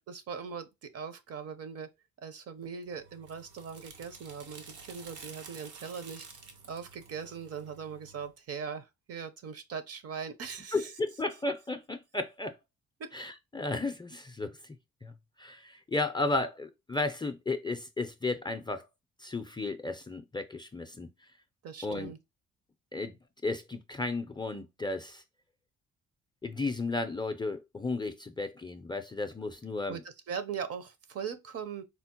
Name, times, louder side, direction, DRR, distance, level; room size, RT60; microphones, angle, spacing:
voice 1, 0.0-1.9 2.2-6.3 6.6-10.9 13.0-13.1 21.6-22.2 29.9-30.0 30.3-31.8, right 6 dB, 55° right, 0.6 m, -40 dB
sound 1, 2.8-8.3, right 5 dB, 80° right, 0.9 m, -51 dB
voice 2, 10.7-12.6 13.1-14.8 15.0-15.1 15.4-18.8 19.2-21.1 21.8-22.1 22.9-23.2 23.4-25.2 26.4-30.0, left 3 dB, 15° left, 0.4 m, -34 dB
4.3 x 2.0 x 2.8 m
cardioid pair, 90°, 30 cm